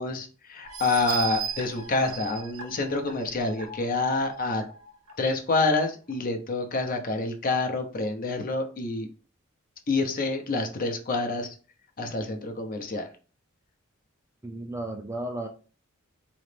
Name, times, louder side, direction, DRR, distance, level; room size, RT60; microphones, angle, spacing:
voice 1, 0.0-4.6 5.2-9.1 9.9-11.5 12.0-13.1, left 3 dB, 40° left, 4 dB, 0.7 m, -27 dB
sound 1, 0.6-5.1 5.6-5.7 6.1-6.2, right 7 dB, 85° right, 0.8 m, -37 dB
voice 2, 14.4-15.5, right 1 dB, 15° right, 5 dB, 0.4 m, -34 dB
3.9 x 3.1 x 3.3 m, 0.37 s
head